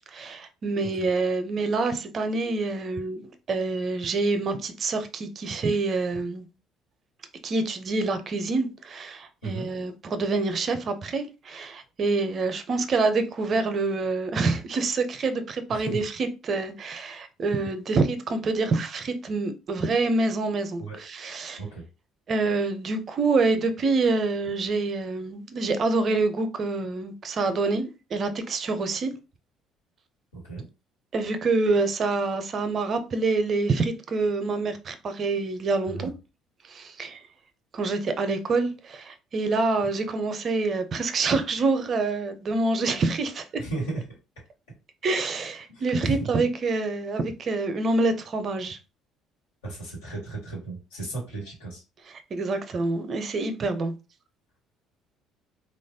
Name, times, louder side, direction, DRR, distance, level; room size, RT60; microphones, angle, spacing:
voice 1, 0.1-3.2 3.5-6.5 7.4-21.6 22.3-29.1 31.1-36.1 36.7-37.2 37.7-43.6 45.0-48.8 52.3-53.9, right 3 dB, 50° right, 0.5 m, -26 dB
voice 2, 15.7-16.0 20.8-21.0 21.6-21.9 30.3-30.7 35.9-36.1 43.6-44.0 45.7-46.3 49.6-51.8, right 3 dB, 85° left, 1.4 m, -34 dB
3.1 x 2.4 x 2.7 m
hypercardioid pair, 60°, 0 cm